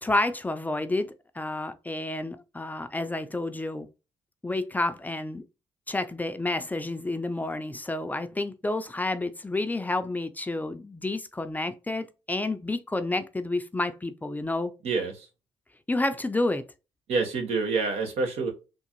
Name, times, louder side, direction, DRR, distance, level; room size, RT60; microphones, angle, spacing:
voice 1, 0.0-3.9 4.4-5.4 5.9-14.7 15.9-16.7, left 2 dB, 15° left, 0.4 m, -30 dB
voice 2, 14.8-15.3 17.1-18.5, right 4 dB, 75° right, 1.1 m, -27 dB
3.7 x 2.5 x 2.9 m
cardioid pair, 70°, 11 cm